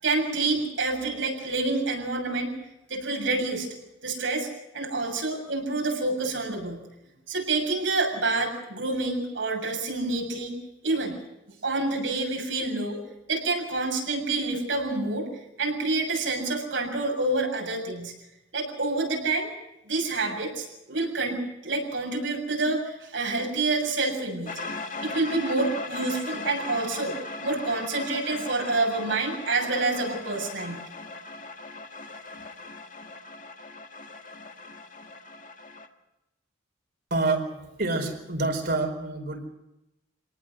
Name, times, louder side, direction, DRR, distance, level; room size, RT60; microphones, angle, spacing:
voice 1, 0.0-2.6 2.9-3.7 4.0-4.5 4.7-6.8 7.3-10.6 10.8-11.2 11.6-13.0 13.3-15.3 15.6-18.1 18.5-19.5 19.9-24.5 25.0-27.2 27.4-30.8, right 3 dB, 80° right, 1 dB, 7.0 m, -28 dB
sound 1, 24.5-35.9, left 3 dB, 45° left, 1.7 m, -38 dB
voice 2, 37.1-39.5, right 2 dB, 60° right, 5 dB, 4.6 m, -27 dB
26.0 x 18.5 x 6.4 m, 0.91 s
head